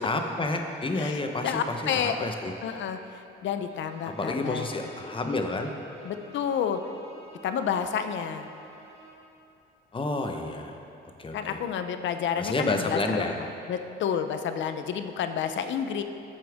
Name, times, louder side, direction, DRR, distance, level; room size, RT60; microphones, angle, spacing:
voice 1, 0.0-2.5 4.1-5.7 9.9-10.8 11.2-11.6 12.4-13.4, left 2 dB, 25° left, 4 dB, 1.0 m, -30 dB
voice 2, 1.0-2.2 2.6-4.7 6.0-6.8 7.4-8.5 11.3-13.3 13.7-16.0, left 8 dB, 70° left, 8 dB, 0.7 m, -30 dB
Bowed string instrument, 3.6-9.3, right 1 dB, 30° right, 2.4 m, -51 dB
13.0 x 7.4 x 3.5 m, 2.8 s
cardioid pair, 90°, 20 cm